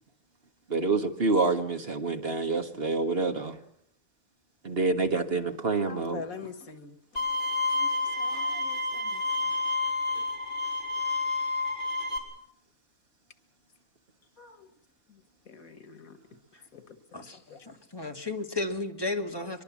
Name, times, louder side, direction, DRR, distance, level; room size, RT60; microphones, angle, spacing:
voice 1, 0.7-3.6 4.6-6.2, right 3 dB, 45° right, 6 dB, 1.8 m, -27 dB
voice 2, 5.8-7.0 7.7-9.2 14.4-14.7 15.5-16.2 16.7-17.2 17.5-17.6, left 5 dB, 85° left, 10 dB, 2.1 m, -45 dB
Bowed string instrument, 7.2-12.2, left 3 dB, 35° left, 5.5 m, -29 dB
voice 3, 17.7-19.6, left 2 dB, 15° left, 3 dB, 2.1 m, -33 dB
23.5 x 23.0 x 7.3 m, 0.67 s
omnidirectional pair, 1.4 m